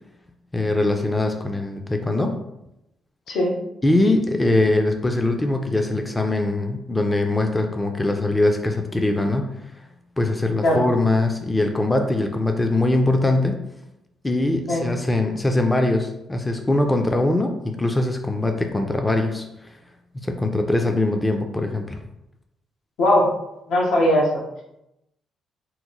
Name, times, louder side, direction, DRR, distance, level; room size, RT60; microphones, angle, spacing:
voice 1, 0.5-2.4 3.8-9.5 10.2-13.6 14.2-19.7 20.1-22.0, left 2 dB, 15° left, 4 dB, 0.3 m, -22 dB
voice 2, 23.0-23.3 23.7-24.4, left 1 dB, 80° left, -2 dB, 0.8 m, -19 dB
2.9 x 2.1 x 3.7 m, 0.85 s
cardioid pair, 90°, 0 cm